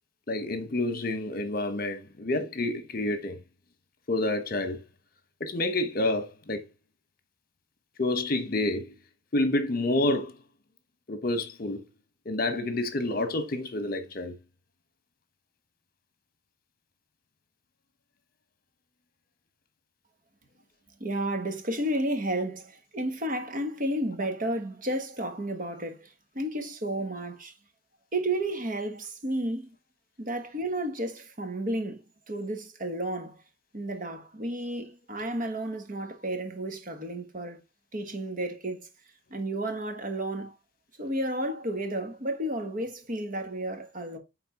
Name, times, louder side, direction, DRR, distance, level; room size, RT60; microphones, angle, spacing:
voice 1, 0.3-3.4 4.1-4.8 5.4-6.6 8.0-8.9 9.3-10.3 11.1-11.8 12.2-14.3, left 2 dB, 50° left, 1.2 m, -28 dB
voice 2, 21.0-26.1 26.3-27.5 28.1-29.7 30.2-32.0 32.3-33.4 33.7-37.6 37.9-38.9 39.3-40.5 41.0-44.2, right 1 dB, 45° right, 1.4 m, -32 dB
9.4 x 3.7 x 3.9 m
head